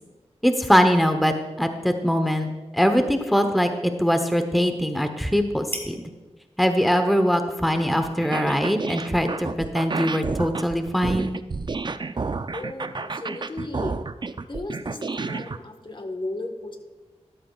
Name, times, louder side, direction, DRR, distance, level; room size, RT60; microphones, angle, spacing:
voice 1, 0.4-6.0 6.6-11.3, equal, ahead, 7 dB, 0.9 m, -22 dB
sound 1, 1.4-9.1, equal, 20° left, 2.2 m, -46 dB
sound 2, 8.2-15.6, right 4 dB, 40° right, 0.4 m, -30 dB
voice 2, 12.5-14.0 14.5-16.8, left 2 dB, 45° left, 5 dB, 1.3 m, -35 dB
13.5 x 12.0 x 2.4 m, 1.2 s
cardioid pair, 45°, 12 cm